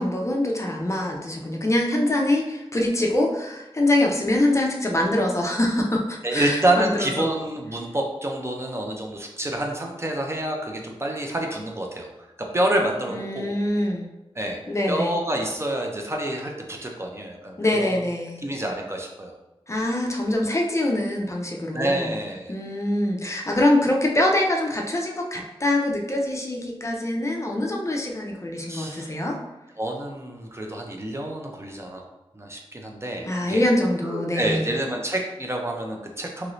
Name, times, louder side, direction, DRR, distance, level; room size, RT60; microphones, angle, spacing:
voice 1, 0.0-7.3 13.1-14.1 14.7-15.2 17.6-18.4 19.7-22.1 22.5-29.4 33.2-34.7, left 1 dB, 30° left, 0 dB, 0.5 m, -24 dB
voice 2, 6.2-12.1 12.5-13.5 14.4-14.6 14.9-18.0 18.4-19.3 21.7-22.5 28.7-29.1 29.8-32.0 32.4-33.6 34.0-36.5, right 1 dB, 25° right, 1 dB, 0.5 m, -27 dB
3.0 x 2.6 x 3.0 m, 0.98 s
wide cardioid pair, 70°, 10 cm